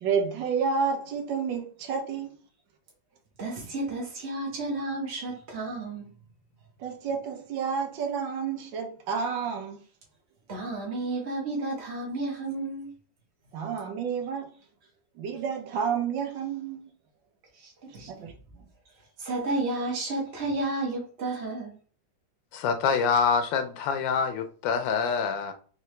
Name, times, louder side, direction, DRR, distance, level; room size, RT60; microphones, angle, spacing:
voice 1, 0.0-2.3 6.8-9.8 13.5-14.5 15.2-16.9 18.1-18.3, right 6 dB, 90° right, 1.6 m, -30 dB
voice 2, 3.4-6.1 10.5-12.9 17.5-18.3 19.2-21.7, right 2 dB, 40° right, 1.2 m, -32 dB
voice 3, 22.5-25.5, left 6 dB, 85° left, 1.3 m, -26 dB
3.7 x 3.3 x 3.2 m
omnidirectional pair, 2.0 m